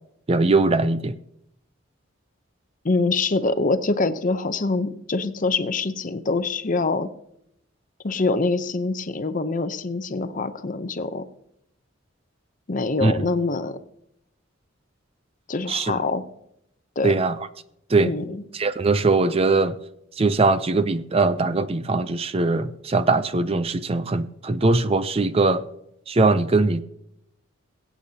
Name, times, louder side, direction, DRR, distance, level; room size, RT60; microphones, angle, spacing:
voice 1, 0.3-1.2 13.0-13.3 15.7-16.0 17.0-17.4 17.9-18.1 18.5-19.7 20.2-25.6 26.1-26.8, right 3 dB, 30° right, 0.5 m, -21 dB
voice 2, 2.8-7.1 8.0-11.2 12.7-13.8 15.5-16.2 17.0-17.1 18.0-18.4, left 3 dB, 40° left, 0.7 m, -24 dB
23.0 x 8.2 x 2.8 m
head